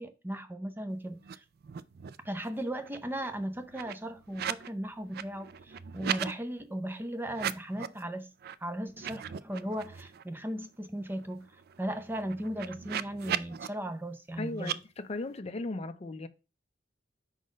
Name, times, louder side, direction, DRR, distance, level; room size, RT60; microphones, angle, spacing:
voice 1, 0.0-1.4 2.2-8.3 8.6-11.5 11.8-14.8, right 1 dB, 10° right, 0.6 m, -37 dB
sound 1, 1.2-1.4 1.6-2.3 2.6-4.7 5.0-6.3 7.3-8.0 8.4-8.5 8.9-10.2 10.6-10.7 11.0-13.7 14.6-14.8, right 9 dB, 55° right, 0.3 m, -38 dB
voice 2, 14.4-16.3, left 2 dB, 35° left, 0.5 m, -37 dB
5.2 x 4.0 x 5.1 m
head